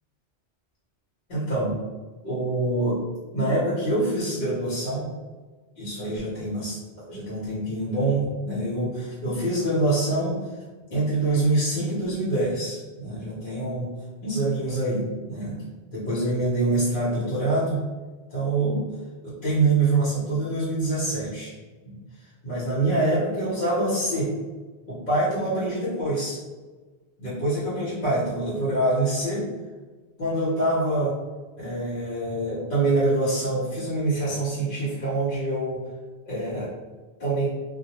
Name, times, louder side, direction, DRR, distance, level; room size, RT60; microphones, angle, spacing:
voice 1, 1.3-1.7 2.2-3.0 3.3-5.1 5.8-6.8 7.1-10.3 10.9-13.9 14.2-15.5 15.9-17.8 18.3-18.8 19.2-21.5 21.8-21.9 22.4-24.3 24.9-26.4 27.2-29.5 30.2-31.1 31.6-35.8 36.2-36.7 37.2-37.5, right 2 dB, 55° left, -9 dB, 0.9 m, -25 dB
2.2 x 2.1 x 2.8 m, 1.3 s
omnidirectional pair, 1.1 m